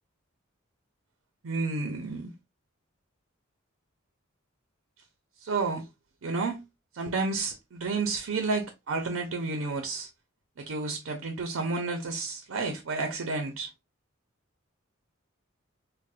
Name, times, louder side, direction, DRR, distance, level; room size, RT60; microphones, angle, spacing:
voice 1, 1.4-2.3 5.4-5.9 6.2-6.6 6.9-10.1 10.6-13.7, right 3 dB, 65° right, 0.5 m, -31 dB
4.0 x 2.0 x 2.4 m
head